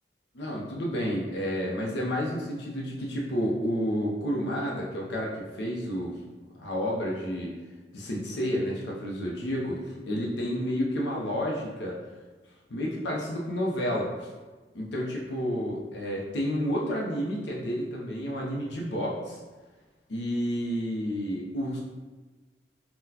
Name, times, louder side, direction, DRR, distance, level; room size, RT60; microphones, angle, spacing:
voice 1, 0.3-5.3 5.6-6.1 6.6-7.5 7.9-9.8 10.1-12.0 12.7-14.3 14.7-19.4 20.1-21.8, equal, 80° left, -3 dB, 0.6 m, -30 dB
3.8 x 2.1 x 2.8 m, 1.3 s
head